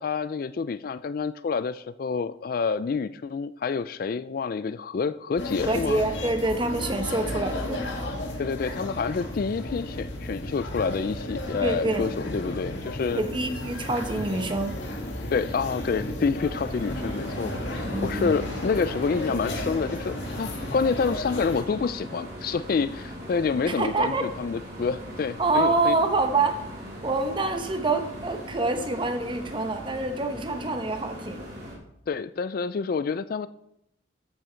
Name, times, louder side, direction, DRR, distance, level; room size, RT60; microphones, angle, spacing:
voice 1, 0.0-6.0 8.4-13.2 15.3-25.9 32.1-33.5, left 5 dB, 50° left, 15 dB, 0.3 m, -28 dB
sound 1, 5.4-21.6, left 1 dB, 70° left, 2.1 m, -34 dB
voice 2, 5.6-7.9 11.6-12.1 13.1-14.8 17.8-18.4 23.6-24.2 25.4-26.6 27.0-31.5, right 2 dB, 25° right, 6 dB, 1.0 m, -26 dB
sound 2, 16.3-31.8, equal, 55° right, 3.5 m, -40 dB
13.5 x 6.4 x 4.4 m, 0.80 s
head